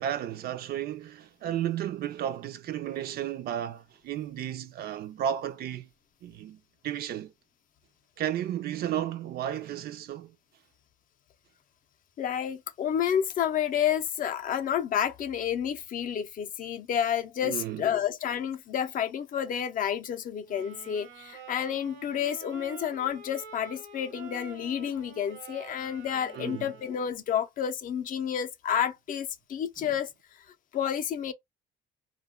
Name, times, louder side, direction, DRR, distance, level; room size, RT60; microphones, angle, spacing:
voice 1, 0.0-5.9 6.2-7.3 8.2-10.3 17.4-17.9 26.3-26.7 29.8-29.9, right 10 dB, 55° right, 0.4 m, -33 dB
voice 2, 12.2-30.1 30.7-31.3, left 9 dB, 45° left, 0.5 m, -30 dB
sound 1, 20.4-27.3, right 5 dB, 80° right, 1.0 m, -47 dB
2.2 x 2.1 x 3.5 m
cardioid pair, 155°, 19 cm